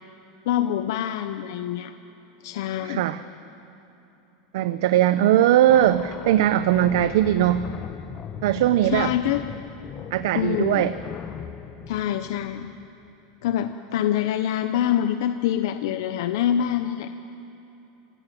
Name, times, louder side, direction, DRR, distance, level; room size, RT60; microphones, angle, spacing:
voice 1, 0.5-1.9 2.4-3.0 8.8-9.4 10.3-10.9 11.9-12.7 13.4-17.1, left 11 dB, 60° left, 9 dB, 0.8 m, -25 dB
voice 2, 2.8-3.2 4.5-7.7 8.4-9.1 10.1-11.0, right 12 dB, 60° right, 12 dB, 0.7 m, -20 dB
sound 1, 5.7-13.1, left 8 dB, 20° left, 0.6 m, -39 dB
25.0 x 16.5 x 9.3 m, 3.0 s
supercardioid pair, 175°, 2 cm